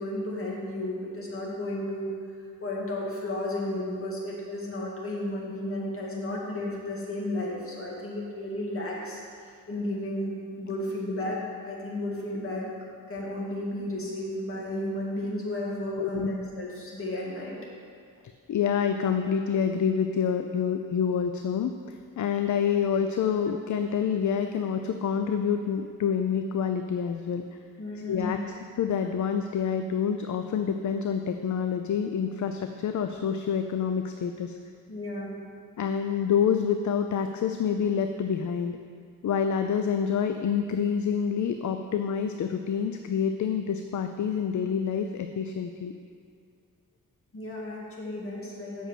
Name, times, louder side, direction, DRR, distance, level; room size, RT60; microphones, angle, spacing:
voice 1, 0.0-2.1 2.6-12.7 13.1-17.6 23.4-23.6 27.8-28.5 34.9-35.4 47.3-48.9, left 1 dB, 40° left, -4 dB, 2.3 m, -33 dB
voice 2, 16.0-16.3 18.5-27.4 28.1-34.6 35.8-38.8 39.2-45.9, left 7 dB, 60° left, 7 dB, 0.5 m, -27 dB
8.1 x 6.3 x 7.6 m, 2.3 s
wide cardioid pair, 135°, 34 cm